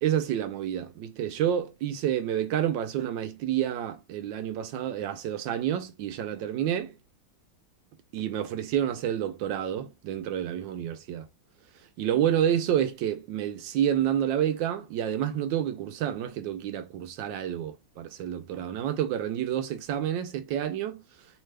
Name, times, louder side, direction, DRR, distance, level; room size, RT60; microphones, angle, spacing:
voice 1, 0.0-6.9 8.1-11.3 12.0-21.0, right 10 dB, 75° right, 1.2 m, -29 dB
3.5 x 2.3 x 3.2 m
omnidirectional pair, 2.2 m